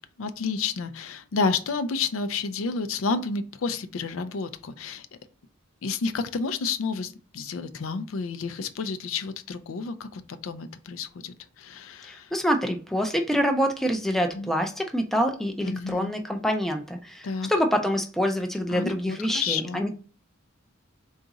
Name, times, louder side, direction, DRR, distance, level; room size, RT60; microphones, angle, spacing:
voice 1, 0.2-5.1 5.8-12.3 14.3-14.5 15.6-16.1 17.2-17.5 18.7-20.0, left 4 dB, 75° left, 0.4 m, -30 dB
voice 2, 12.0-20.0, equal, ahead, 0.3 m, -26 dB
3.8 x 2.4 x 3.9 m
head